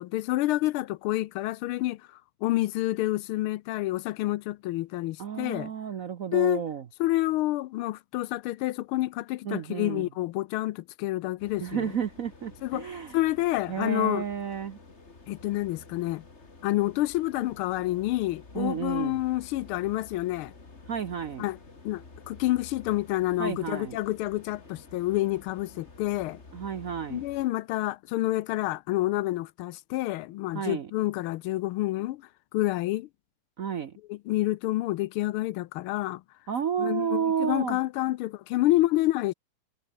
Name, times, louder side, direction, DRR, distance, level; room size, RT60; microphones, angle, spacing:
voice 1, 0.0-2.0 2.4-5.7 6.3-6.6 7.0-11.9 12.6-14.2 15.3-16.2 16.6-20.5 21.4-21.6 21.8-26.4 27.1-32.2 32.5-33.1 34.1-36.2 36.8-39.3, left 16 dB, 80° left, 1.5 m, -28 dB
voice 2, 5.2-6.8 9.4-10.1 11.6-13.2 13.7-14.8 18.5-19.2 20.9-21.4 23.4-24.0 26.5-27.2 30.5-30.9 33.6-33.9 36.5-37.8, right 8 dB, 55° right, 0.9 m, -31 dB
sound 1, 11.4-27.5, left 3 dB, 30° left, 3.0 m, -50 dB
omnidirectional pair, 2.4 m